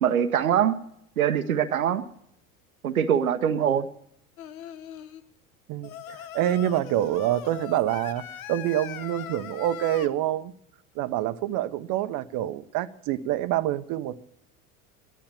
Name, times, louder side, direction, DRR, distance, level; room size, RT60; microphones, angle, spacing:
voice 1, 0.0-0.8 1.2-2.0 2.8-3.9, right 9 dB, 90° right, 0.9 m, -23 dB
voice 2, 3.5-3.8 5.7-10.5 11.0-14.2, right 13 dB, 50° right, 0.9 m, -27 dB
Singing, 4.4-5.2 5.8-10.1, left 10 dB, 80° left, 1.0 m, -40 dB
13.5 x 11.5 x 7.4 m
hypercardioid pair, 80°, 42 cm